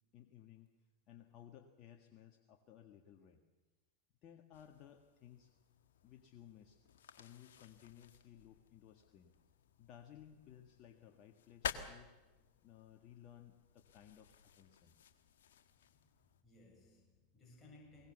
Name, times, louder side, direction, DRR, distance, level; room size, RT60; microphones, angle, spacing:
voice 1, 0.1-0.7 1.1-3.4 4.2-5.5 6.0-6.8 7.2-9.3 9.8-12.1 12.6-14.9, left 10 dB, 45° left, 4 dB, 1.7 m, -59 dB
sound 1, 4.5-16.4, left 8 dB, 70° left, 1.5 m, -52 dB
voice 2, 16.0-18.1, left 2 dB, 20° left, -2 dB, 7.4 m, -62 dB
22.0 x 19.5 x 7.0 m, 1.2 s
hypercardioid pair, 90°, 0 cm